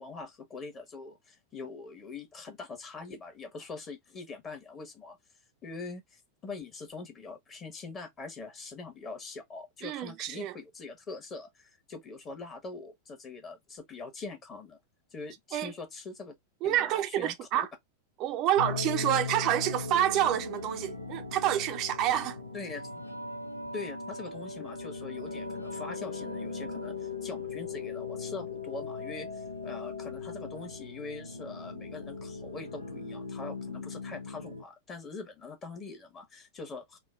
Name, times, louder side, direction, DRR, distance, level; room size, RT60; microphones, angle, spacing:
voice 1, 0.0-5.2 5.6-14.8 15.1-16.3 16.6-17.3 22.5-22.9 23.7-37.0, left 3 dB, 25° left, 1.3 m, -43 dB
voice 2, 9.8-10.5 15.5-15.7 16.6-17.7 18.2-22.4, right 12 dB, 40° right, 0.5 m, -28 dB
sound 1, 18.6-34.6, left 4 dB, 85° left, 0.7 m, -39 dB
3.7 x 2.2 x 3.4 m
figure-of-eight pair, 90°, 0 cm